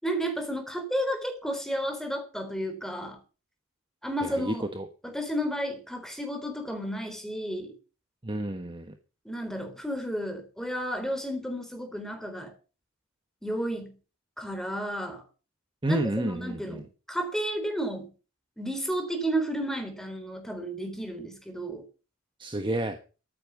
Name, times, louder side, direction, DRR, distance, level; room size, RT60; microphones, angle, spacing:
voice 1, 0.0-3.2 4.0-4.7 5.0-7.7 9.3-12.5 13.4-14.0 14.4-15.2 15.9-18.1 18.6-21.8, right 1 dB, ahead, 6 dB, 3.7 m, -32 dB
voice 2, 4.2-4.9 8.2-8.9 15.8-16.8 22.4-23.0, right 1 dB, 25° right, 7 dB, 1.2 m, -30 dB
14.0 x 9.0 x 7.2 m, 0.35 s
head